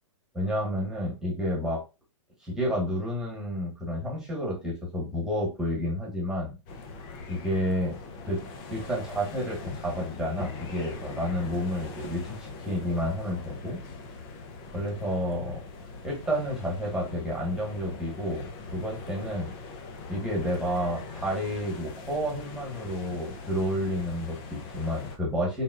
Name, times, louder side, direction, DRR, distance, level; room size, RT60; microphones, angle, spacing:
voice 1, 0.3-1.8 2.4-6.6 7.3-8.0 8.2-8.4 8.7-13.8 14.7-15.6 16.0-19.5 20.1-25.6, equal, 5° right, -3 dB, 1.4 m, -30 dB
sound 1, 6.7-25.2, left 4 dB, 30° left, 0.7 m, -42 dB
4.0 x 3.5 x 2.4 m, 0.28 s
hypercardioid pair, 135°, 17 cm